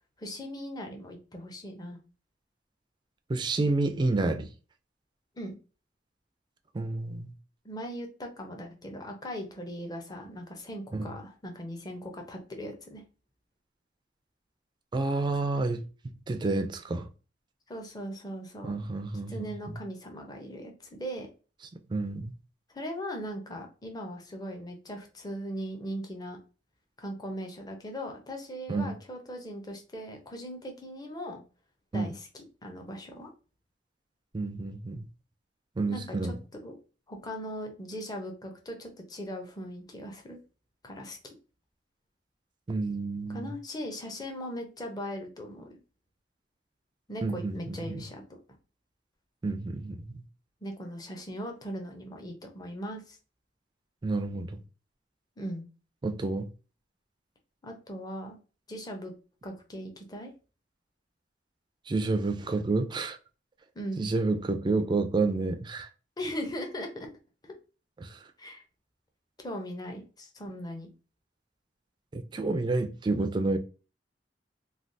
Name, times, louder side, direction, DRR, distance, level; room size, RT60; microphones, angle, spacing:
voice 1, 0.2-2.0 5.4-5.5 7.6-13.0 17.7-18.8 19.3-21.3 22.7-26.4 27.0-31.4 31.9-33.3 35.9-36.3 36.6-36.7 37.1-40.4 40.8-41.3 43.3-45.7 47.1-48.4 50.6-53.2 55.4-55.6 57.6-58.4 58.7-59.1 59.4-60.3 63.7-64.1 66.2-67.1 67.4-67.5 68.4-68.6 69.4-70.9, equal, 20° left, 0.6 m, -39 dB
voice 2, 3.3-4.5 6.7-7.3 10.9-11.0 14.9-15.8 16.3-17.1 18.6-19.5 21.9-22.3 28.7-29.0 31.9-32.1 34.3-35.1 35.8-36.3 42.7-43.5 47.2-48.0 49.4-50.2 54.0-54.6 56.0-56.5 61.9-63.2 64.0-65.9 68.0-68.2 72.1-73.6, right 3 dB, 25° right, 0.3 m, -29 dB
3.3 x 2.3 x 2.6 m
head